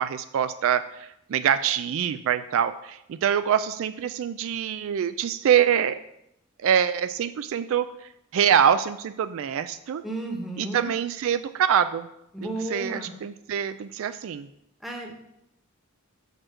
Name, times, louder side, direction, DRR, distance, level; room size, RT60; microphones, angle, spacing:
voice 1, 0.0-6.0 6.6-10.0 10.6-12.1 12.4-14.5, right 8 dB, 65° right, 12 dB, 0.3 m, -25 dB
voice 2, 10.0-10.9 12.3-13.1 14.8-15.1, right 2 dB, ahead, 0 dB, 1.1 m, -33 dB
6.6 x 4.5 x 6.2 m, 0.81 s
head